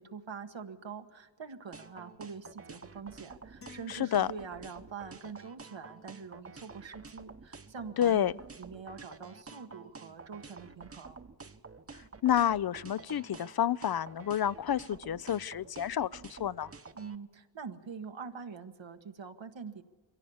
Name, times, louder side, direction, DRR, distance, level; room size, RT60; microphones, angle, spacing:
voice 1, 0.0-8.3 8.6-11.2 16.9-19.8, right 5 dB, 85° right, 1.3 m, -44 dB
sound 1, 1.7-17.2, right 4 dB, 30° right, 0.9 m, -49 dB
sound 2, 3.6-5.1, left 5 dB, 30° left, 1.1 m, -55 dB
voice 2, 3.9-4.3 8.0-8.3 12.2-16.7, left 10 dB, 55° left, 0.5 m, -29 dB
23.5 x 16.5 x 7.0 m
wide cardioid pair, 60°, 44 cm